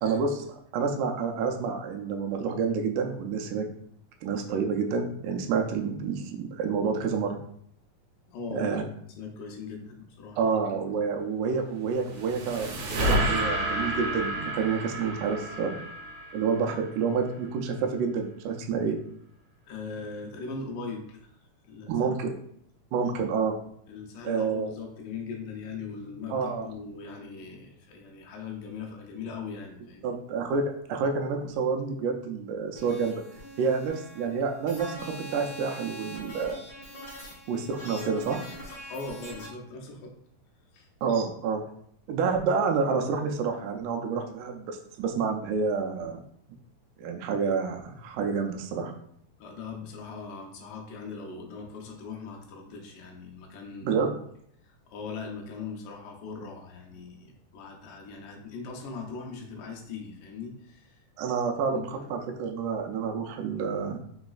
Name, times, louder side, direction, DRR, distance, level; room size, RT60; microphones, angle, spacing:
voice 1, 0.0-3.7 4.2-7.4 8.5-8.8 10.4-12.7 13.0-15.8 16.3-19.0 21.9-22.4 22.9-23.6 24.3-24.7 26.3-26.7 30.0-33.2 33.6-36.6 37.5-38.4 41.0-41.6 42.1-46.2 47.0-48.9 53.8-54.1 61.2-64.0, right 5 dB, 80° right, 3 dB, 2.1 m, -28 dB
voice 2, 8.3-8.7 9.2-10.4 12.8-12.9 19.7-21.3 21.6-22.0 23.0-23.3 23.9-30.1 36.2-36.4 38.5-40.1 40.7-40.9 49.4-54.0 54.6-61.0 61.7-62.1, left 4 dB, 80° left, 1 dB, 2.2 m, -40 dB
sound 1, 11.7-17.1, right 1 dB, 65° right, 2.0 m, -30 dB
sound 2, 32.7-39.5, equal, 50° left, 1.4 m, -43 dB
5.0 x 3.9 x 2.3 m, 0.67 s
omnidirectional pair, 3.8 m